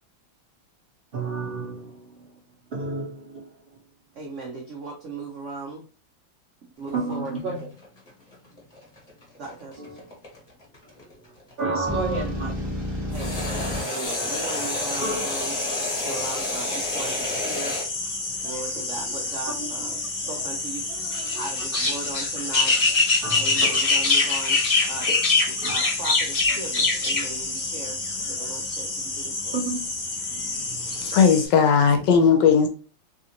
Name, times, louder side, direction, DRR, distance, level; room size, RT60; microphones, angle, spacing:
voice 1, 1.1-2.3 2.7-3.5 6.9-7.6 9.8-10.1 11.6-12.5 15.0-15.2 19.6-20.1 21.3-21.4 23.2-23.8 25.6-25.7 29.5-29.8 30.3-30.9, right 3 dB, 45° right, -5 dB, 0.8 m, -31 dB
voice 2, 4.1-5.8 6.8-7.3 9.4-9.8 13.1-13.5 13.8-15.6 16.0-17.8 18.4-20.8 21.4-22.8 23.4-24.6 24.9-25.1 25.7-28.0 28.3-29.6, right 3 dB, 80° right, 0 dB, 0.6 m, -37 dB
sound 1, 6.8-12.0 13.1-17.9, left 2 dB, 25° left, 1.1 m, -32 dB
sound 2, 11.9-13.8, left 1 dB, 30° right, 0.5 m, -30 dB
sound 3, 14.0-31.5, left 3 dB, 45° left, 0.6 m, -26 dB
voice 3, 30.8-32.7, left 6 dB, 70° left, 5 dB, 1.2 m, -18 dB
3.3 x 2.5 x 2.8 m, 0.39 s
omnidirectional pair, 2.1 m